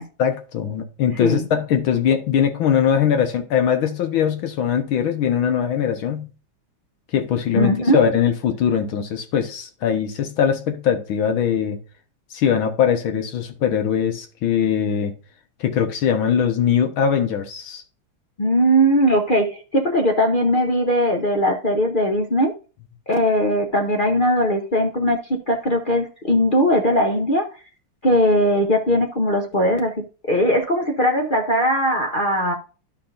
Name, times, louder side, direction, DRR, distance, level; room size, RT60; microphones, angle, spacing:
voice 1, 0.2-6.3 7.1-11.8 12.3-15.1 15.6-17.8, left 8 dB, 85° left, 2.0 m, -21 dB
voice 2, 7.5-8.0 18.4-22.5 23.1-27.5 28.0-29.9 30.3-32.5, equal, 40° left, 0.7 m, -19 dB
12.0 x 5.2 x 2.6 m
omnidirectional pair, 2.2 m